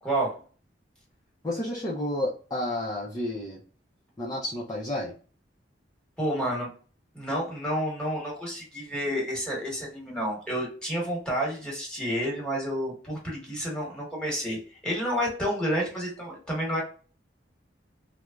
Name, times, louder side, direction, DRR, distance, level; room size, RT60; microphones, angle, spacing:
voice 1, 0.0-0.3 6.2-6.7 7.1-16.8, equal, 5° left, -3 dB, 1.2 m, -30 dB
voice 2, 1.4-3.6 4.2-5.1, left 1 dB, 20° left, -5 dB, 0.5 m, -31 dB
3.2 x 2.0 x 2.3 m, 0.39 s
head